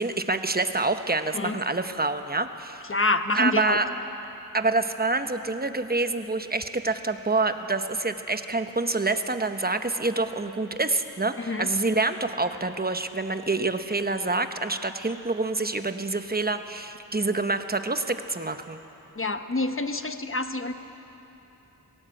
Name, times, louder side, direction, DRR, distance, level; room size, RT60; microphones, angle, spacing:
voice 1, 0.0-2.8 3.3-3.9 4.5-18.8, right 3 dB, 25° right, 8 dB, 1.0 m, -27 dB
voice 2, 2.9-3.8 11.4-11.7 19.1-20.7, left 2 dB, 35° left, 8 dB, 1.0 m, -27 dB
20.5 x 18.0 x 7.8 m, 3.0 s
wide cardioid pair, 70°, 36 cm